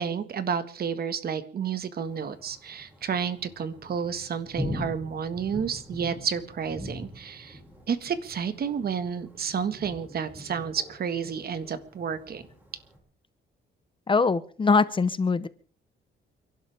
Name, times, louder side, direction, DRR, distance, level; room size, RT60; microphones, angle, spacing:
voice 1, 0.0-7.6 7.9-12.4, right 7 dB, 50° right, 11 dB, 1.7 m, -31 dB
Thunder, 2.0-13.0, left 1 dB, 10° right, 5.7 m, -42 dB
voice 2, 14.1-15.5, left 4 dB, 25° left, 15 dB, 0.8 m, -22 dB
29.0 x 12.0 x 3.5 m, 0.40 s
cardioid pair, 130°, 20 cm